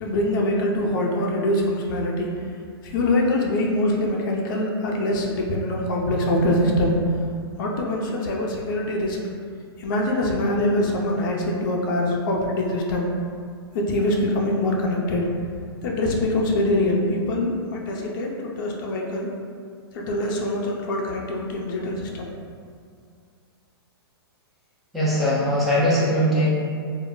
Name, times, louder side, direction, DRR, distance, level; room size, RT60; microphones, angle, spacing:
voice 1, 0.0-2.3 2.8-7.0 7.6-9.2 9.8-13.1 13.7-15.3 15.8-19.3 19.9-22.3, left 1 dB, 50° left, -1 dB, 0.5 m, -24 dB
voice 2, 24.9-26.5, equal, ahead, -11 dB, 0.6 m, -20 dB
2.2 x 2.0 x 3.7 m, 2.3 s
hypercardioid pair, 145°, 13 cm